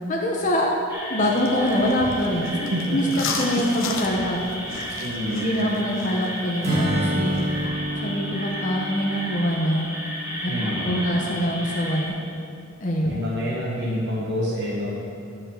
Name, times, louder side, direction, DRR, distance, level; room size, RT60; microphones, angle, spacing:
voice 1, 0.1-0.7 1.1-4.4 5.3-7.4 8.0-9.9 10.4-10.5 10.8-12.2 12.8-13.2, equal, 35° left, -2 dB, 1.0 m, -24 dB
sound 1, 0.9-12.1, equal, 10° right, 1.6 m, -34 dB
sound 2, 1.2-7.7, left 4 dB, 65° left, 1.0 m, -35 dB
voice 2, 2.7-3.1 3.5-3.8 5.0-5.9 10.5-11.1 13.1-14.9, equal, 50° right, -6 dB, 1.5 m, -28 dB
Acoustic guitar / Strum, 6.6-10.5, equal, 30° right, 2.2 m, -28 dB
11.5 x 5.6 x 7.3 m, 2.5 s
head